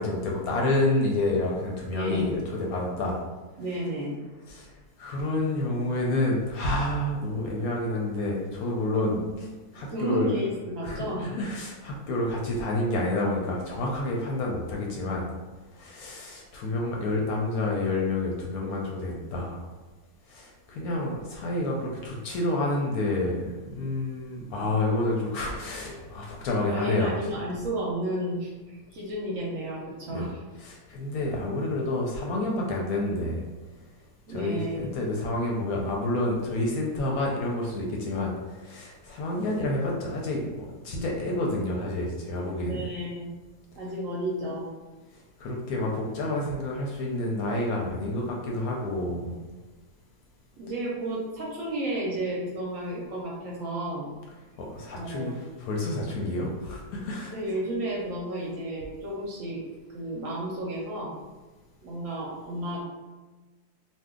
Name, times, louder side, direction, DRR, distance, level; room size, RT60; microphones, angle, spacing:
voice 1, 0.0-3.2 4.5-4.7 5.0-9.2 9.7-10.4 10.8-15.3 15.7-19.6 20.3-27.2 30.1-30.3 30.6-33.4 34.3-42.8 45.4-49.4 54.6-57.3, left 2 dB, 70° left, -1 dB, 0.9 m, -29 dB
voice 2, 2.0-2.3 3.6-4.2 9.0-9.2 9.9-11.3 19.1-19.2 24.6-24.7 26.6-30.4 34.3-34.9 42.6-43.3 43.8-44.7 49.2-49.4 50.6-54.1 54.9-55.4 57.3-59.6 59.9-61.2 61.8-62.8, right 1 dB, 65° right, -4 dB, 0.9 m, -32 dB
2.6 x 2.3 x 3.6 m, 1.3 s
omnidirectional pair, 1.8 m